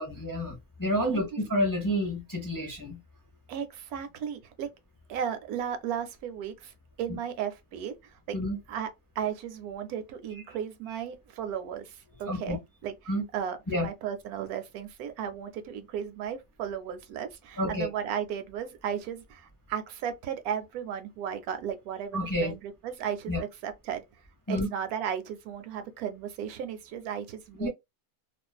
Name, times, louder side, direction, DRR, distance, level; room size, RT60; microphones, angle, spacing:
voice 1, 0.0-3.0 8.3-8.6 12.3-12.6 13.1-13.2 13.7-13.9 17.6-17.9 22.1-22.6 23.3-23.4 24.5-24.7 27.6-27.7, equal, 25° left, 0.4 m, -29 dB
voice 2, 3.5-4.7 5.1-8.1 8.7-8.9 9.2-12.9 13.3-24.0 24.5-27.7, right 8 dB, 90° right, 1.1 m, -35 dB
2.5 x 2.4 x 2.2 m
omnidirectional pair, 1.5 m